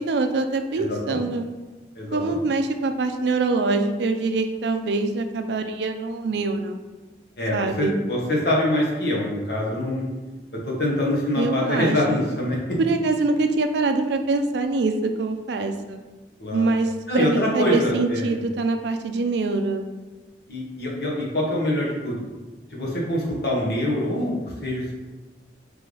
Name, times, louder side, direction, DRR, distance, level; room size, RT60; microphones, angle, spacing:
voice 1, 0.0-1.5 2.1-6.8 7.5-7.9 11.4-12.2 12.8-16.0 16.5-19.9, right 3 dB, 70° right, 6 dB, 0.4 m, -24 dB
voice 2, 0.8-1.2 1.9-2.4 7.4-10.0 10.5-12.8 16.4-16.7 17.1-18.3 20.5-22.2 22.7-24.9, left 1 dB, 55° left, -4 dB, 1.0 m, -25 dB
3.3 x 3.2 x 3.7 m, 1.2 s
head